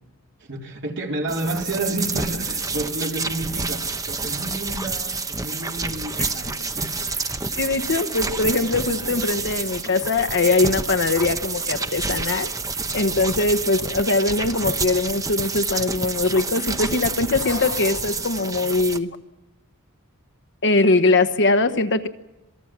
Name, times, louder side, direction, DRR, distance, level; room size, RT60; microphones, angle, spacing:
voice 1, 0.4-7.0, right 2 dB, 55° right, 3.8 m, -30 dB
sound 1, 1.3-19.0, right 4 dB, 15° right, 0.9 m, -28 dB
voice 2, 7.6-12.5 12.9-19.2 20.6-22.1, left 3 dB, 55° left, 1.2 m, -21 dB
27.0 x 19.5 x 7.4 m
head